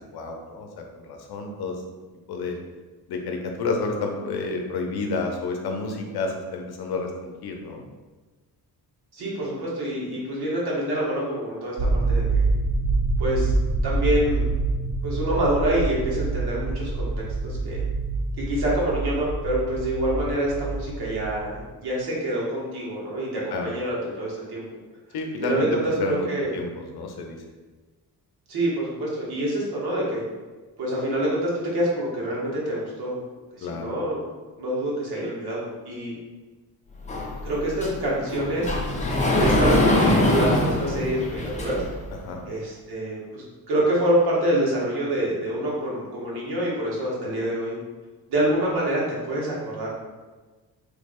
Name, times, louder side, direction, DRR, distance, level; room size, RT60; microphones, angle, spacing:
voice 1, 0.1-1.7 2.3-2.6 3.1-7.8 23.5-23.7 25.1-25.7 26.0-26.3 26.5-27.4 33.6-33.9 42.2-42.4, left 3 dB, 75° left, 3 dB, 0.6 m, -30 dB
voice 2, 9.1-12.4 13.2-13.5 13.8-14.4 15.0-17.8 18.4-24.6 25.4-26.5 28.5-30.2 30.8-33.2 33.6-34.2 34.6-36.1 37.4-38.7 39.4-41.8 42.5-47.7 48.3-49.9, right 1 dB, 80° right, -5 dB, 1.1 m, -26 dB
sound 1, 11.8-21.6, right 3 dB, 55° right, 0.5 m, -26 dB
Sliding door, 37.1-42.0, left 1 dB, 20° left, 0.4 m, -23 dB
3.3 x 2.0 x 3.5 m, 1.3 s
cardioid pair, 125°, 38 cm